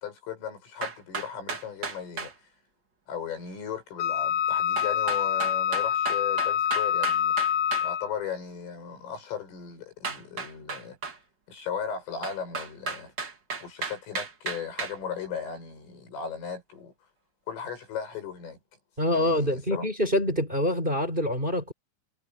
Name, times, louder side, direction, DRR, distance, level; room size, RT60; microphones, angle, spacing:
voice 1, 0.0-2.3 3.1-7.3 7.8-11.0 11.5-13.1 13.6-16.9 17.5-18.6 19.1-19.9, left 7 dB, 75° left, 10.5 m, -36 dB
sound 1, 0.8-2.3 4.7-7.9 10.0-11.2 12.2-14.9, right 4 dB, 35° right, 1.8 m, -34 dB
Wind instrument woodwind instrument, 4.0-8.2, left 10 dB, 60° left, 3.7 m, -26 dB
voice 2, 19.0-21.7, left 1 dB, 10° right, 7.1 m, -26 dB
omnidirectional pair, 5.8 m